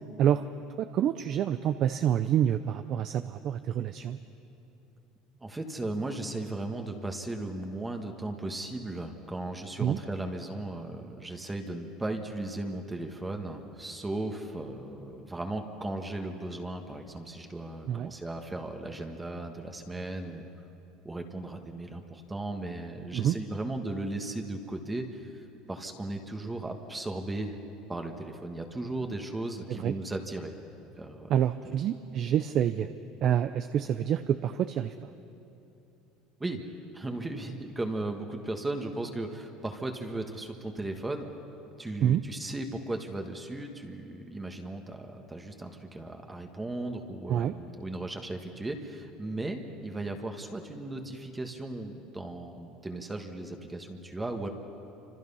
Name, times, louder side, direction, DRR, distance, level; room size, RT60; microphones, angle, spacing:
voice 1, 0.8-4.2 9.8-10.0 17.9-18.1 23.1-23.4 29.7-29.9 31.3-32.9 33.2-34.9 42.0-42.2 47.3-47.5, right 10 dB, 45° right, 10 dB, 0.6 m, -27 dB
voice 2, 5.4-20.5 21.0-25.4 25.7-27.5 27.9-30.6 31.0-31.3 36.4-36.6 36.9-41.3 41.8-54.5, right 2 dB, 10° right, 4 dB, 1.5 m, -36 dB
28.5 x 26.0 x 5.6 m, 2.8 s
cardioid pair, 140°, 0 cm